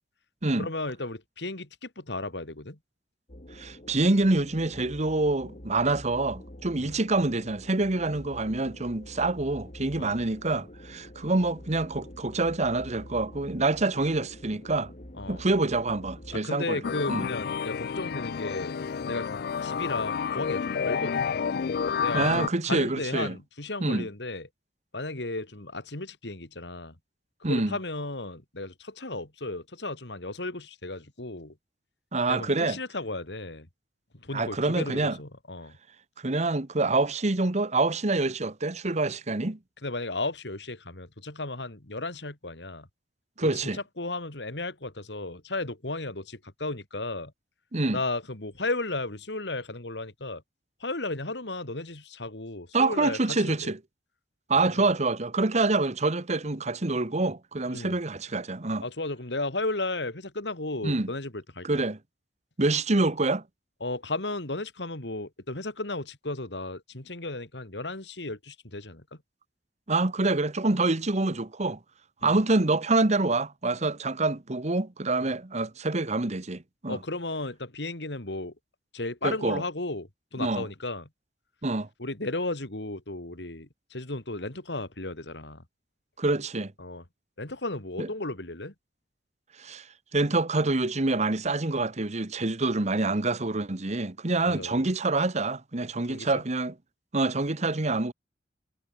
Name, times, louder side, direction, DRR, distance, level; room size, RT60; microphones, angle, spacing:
voice 1, 0.6-2.8 6.8-7.0 10.0-10.1 15.2-15.4 16.3-18.8 19.1-21.2 22.0-24.5 24.9-26.9 27.5-31.5 32.3-33.7 34.2-35.8 39.8-42.9 43.4-47.3 47.9-50.4 50.8-53.4 54.6-54.8 57.7-57.9 58.8-61.8 63.8-69.0 72.2-72.3 75.2-75.3 76.9-78.5 78.9-81.1 82.0-85.6 86.8-87.0 87.4-88.7 94.4-94.8 96.1-96.4, left 2 dB, 75° left, 3.3 m, -34 dB
sound 1, 3.3-16.4, left 1 dB, 45° left, 3.5 m, -46 dB
voice 2, 3.5-14.9 15.3-16.8 17.1-17.3 22.1-23.4 23.8-24.1 27.4-27.8 32.1-32.8 34.3-35.2 36.2-39.6 43.4-43.8 47.7-48.0 52.7-53.8 54.5-58.8 60.8-61.1 61.6-62.0 62.6-63.4 69.9-71.8 72.2-77.0 79.2-79.6 80.4-80.7 81.6-81.9 86.2-86.7 88.0-88.1 89.6-89.9 90.1-96.7 97.1-98.1, right 2 dB, 40° right, 1.3 m, -26 dB
sound 2, 16.8-22.5, left 6 dB, 60° left, 0.4 m, -30 dB
head